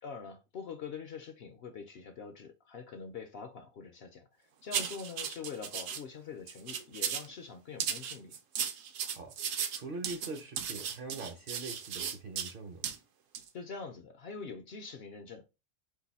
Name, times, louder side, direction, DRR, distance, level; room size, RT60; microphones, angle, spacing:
voice 1, 0.0-8.4 13.5-15.4, left 5 dB, 60° left, 0.7 m, -44 dB
sound 1, 4.7-6.0 6.5-7.3 7.8-12.5 12.8-13.0 13.3-13.5, right 8 dB, 75° right, 1.0 m, -36 dB
voice 2, 9.7-12.9, right 3 dB, 55° right, 0.7 m, -42 dB
4.7 x 2.5 x 4.0 m
omnidirectional pair, 1.4 m